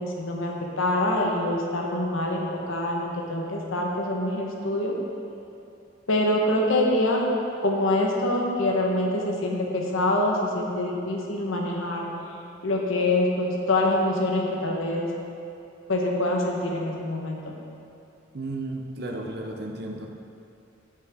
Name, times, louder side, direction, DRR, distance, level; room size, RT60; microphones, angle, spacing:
voice 1, 0.0-4.9 6.1-7.2 7.6-12.1 12.6-15.1 15.9-17.5, left 1 dB, 90° left, -1 dB, 1.1 m, -25 dB
voice 2, 18.3-20.1, right 2 dB, 55° right, 2 dB, 0.8 m, -33 dB
8.9 x 6.6 x 3.6 m, 2.7 s
head